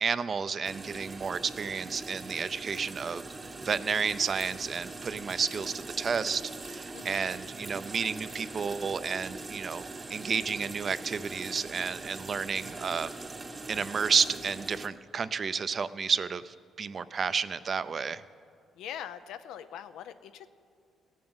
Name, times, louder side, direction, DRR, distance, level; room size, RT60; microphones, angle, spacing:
voice 1, 0.0-3.2 3.6-13.1 13.7-18.2, right 5 dB, 45° right, 14 dB, 0.5 m, -31 dB
sound 1, 0.6-14.9, right 3 dB, 30° right, 0.9 m, -42 dB
voice 2, 6.9-7.4 18.8-20.5, left 10 dB, 85° left, 11 dB, 0.6 m, -42 dB
16.0 x 7.5 x 8.0 m, 2.3 s
cardioid pair, 90°, 0 cm